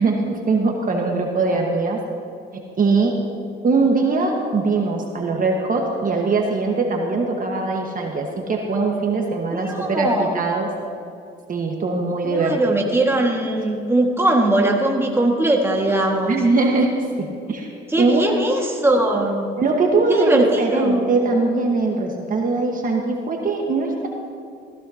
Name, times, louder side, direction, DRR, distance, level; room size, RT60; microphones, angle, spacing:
voice 1, 0.0-2.0 2.8-3.1 3.6-10.7 11.5-12.8 16.3-16.9 17.2-17.7 18.0-18.4 19.6-24.1, right 3 dB, 45° right, 1 dB, 1.5 m, -21 dB
voice 2, 9.5-10.4 12.2-16.4 17.9-19.5 20.1-21.1, right 1 dB, 10° right, 0 dB, 1.9 m, -20 dB
15.5 x 15.0 x 2.9 m, 2.6 s
cardioid pair, 90°, 20 cm